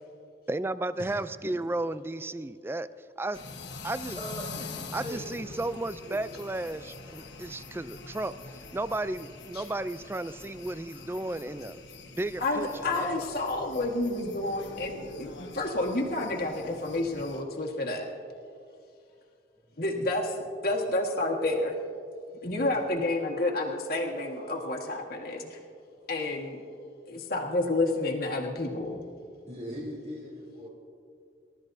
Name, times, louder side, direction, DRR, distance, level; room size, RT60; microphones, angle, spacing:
voice 1, 0.5-2.9 3.2-3.4 3.8-4.2 4.9-8.3 8.7-11.8 12.2-13.3, right 2 dB, 15° right, 14 dB, 0.3 m, -33 dB
sound 1, 3.3-17.4, left 3 dB, 85° left, 1.3 m, -44 dB
voice 2, 4.2-5.7 6.0-6.4 22.5-22.7 26.3-26.4 29.5-30.7, equal, 40° right, -8 dB, 3.1 m, -41 dB
voice 3, 12.4-18.1 19.8-20.4 20.6-21.8 22.4-25.6 26.1-26.6 27.1-29.0, left 2 dB, 55° left, -1 dB, 1.6 m, -30 dB
28.5 x 13.0 x 2.7 m, 2.4 s
head